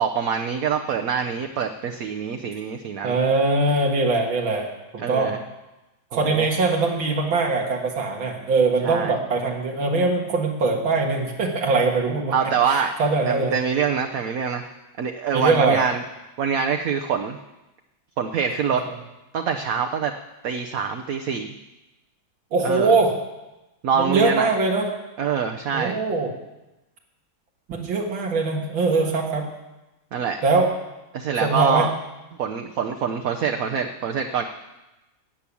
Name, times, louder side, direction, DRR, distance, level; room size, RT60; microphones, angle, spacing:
voice 1, 0.0-3.2 5.0-5.4 6.1-6.5 8.8-9.2 12.3-12.9 13.3-14.7 15.0-16.0 16.4-17.4 18.2-18.8 19.3-20.1 20.4-21.5 22.6-22.9 23.8-24.5 25.2-26.0 30.1-30.4 31.1-31.9 32.4-34.4, right 6 dB, 60° right, 4 dB, 1.0 m, -25 dB
voice 2, 3.0-5.4 6.1-13.5 15.3-15.8 18.9-19.0 22.5-23.1 24.0-24.9 25.7-26.3 27.7-29.5 30.4-30.7 31.4-31.9, right 3 dB, 90° right, 0 dB, 2.4 m, -22 dB
13.0 x 8.6 x 8.4 m, 1.0 s
omnidirectional pair, 2.1 m